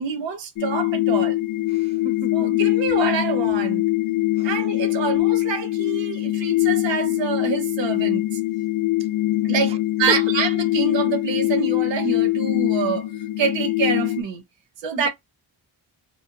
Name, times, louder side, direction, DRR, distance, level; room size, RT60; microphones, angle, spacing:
voice 1, 0.0-1.4 2.3-3.8 4.4-8.4 9.4-13.1 13.4-14.4 14.8-15.1, right 6 dB, 80° right, 1.0 m, -26 dB
sound 1, 0.6-14.2, left 17 dB, 50° left, 0.5 m, -23 dB
voice 2, 1.7-2.5 4.4-4.5 4.7-5.1 9.7-9.8 10.1-10.2 15.0-15.1, right 4 dB, 15° right, 0.3 m, -34 dB
3.0 x 2.5 x 2.7 m
cardioid pair, 70°, 44 cm